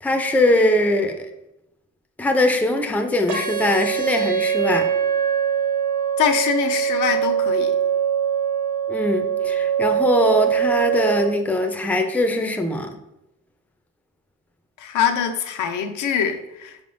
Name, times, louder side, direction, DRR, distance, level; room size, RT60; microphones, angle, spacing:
voice 1, 0.0-1.1 2.2-4.9 8.9-12.9, left 1 dB, 5° left, 5 dB, 0.4 m, -21 dB
sound 1, 3.3-11.3, right 8 dB, 70° right, 0.9 m, -22 dB
voice 2, 6.2-7.8 14.8-16.8, left 8 dB, 85° left, 5 dB, 0.5 m, -23 dB
4.6 x 3.5 x 2.5 m, 0.87 s
cardioid pair, 90°, 30 cm